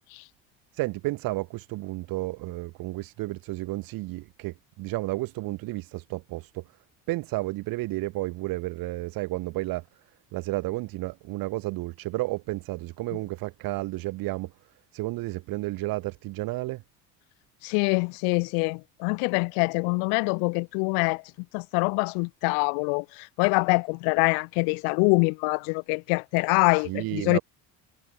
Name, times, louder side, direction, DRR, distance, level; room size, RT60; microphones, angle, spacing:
voice 1, 0.7-6.6 7.1-9.8 10.3-14.5 14.9-16.8 26.7-27.4, right 20 dB, 75° right, 5.2 m, -32 dB
voice 2, 17.6-21.2 21.5-27.4, left 40 dB or more, 90° left, 1.2 m, -25 dB
cardioid pair, 105°, 35 cm